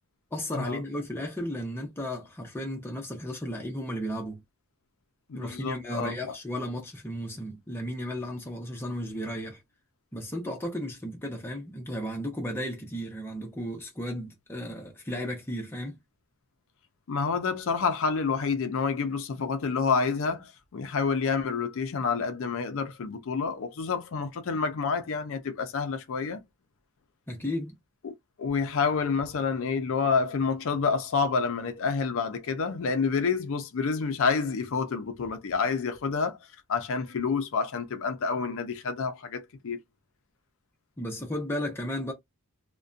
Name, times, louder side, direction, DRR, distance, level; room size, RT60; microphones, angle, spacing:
voice 1, 0.3-4.4 5.3-9.6 10.1-16.0 27.3-27.8 41.0-42.1, equal, 10° left, 0.6 m, -34 dB
voice 2, 5.3-6.4 17.1-26.4 28.0-28.1 28.4-36.4 36.7-39.8, left 5 dB, 60° left, 0.4 m, -28 dB
2.5 x 2.2 x 2.4 m
head